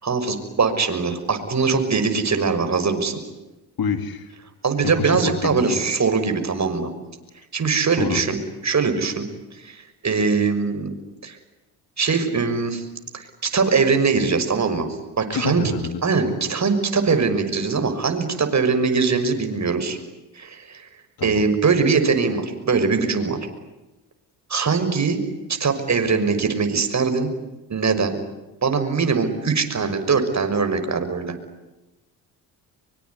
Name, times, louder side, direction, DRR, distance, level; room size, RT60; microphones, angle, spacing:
voice 1, 0.0-3.2 4.6-6.9 7.5-8.4 8.6-9.3 9.6-10.9 11.2-11.4 12.0-12.9 13.1-14.9 15.2-15.6 16.0-20.0 20.3-20.9 21.2-23.4 24.5-25.2 25.5-27.3 27.7-28.1 28.6-31.3, right 5 dB, 40° right, 8 dB, 6.1 m, -21 dB
voice 2, 3.8-4.3 5.0-5.8 8.0-8.2 15.3-16.0 21.2-21.4, left 6 dB, 55° left, 9 dB, 3.3 m, -27 dB
25.0 x 24.0 x 9.8 m, 1.0 s
supercardioid pair, 60°, 43 cm